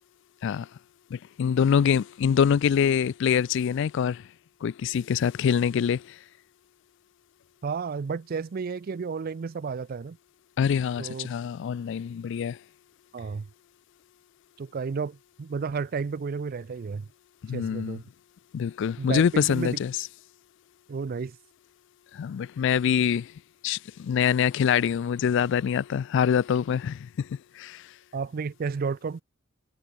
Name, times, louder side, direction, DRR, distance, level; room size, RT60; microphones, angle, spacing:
voice 1, 1.1-4.3 4.6-6.2 10.6-12.6 17.4-18.0 18.5-19.9 22.1-23.3 23.6-27.9, left 7 dB, 60° left, 0.3 m, -25 dB
voice 2, 7.6-10.2 11.0-11.3 13.1-13.5 14.6-17.1 17.5-18.0 19.0-19.8 20.9-21.4 28.1-29.2, right 5 dB, 45° right, 0.4 m, -32 dB
head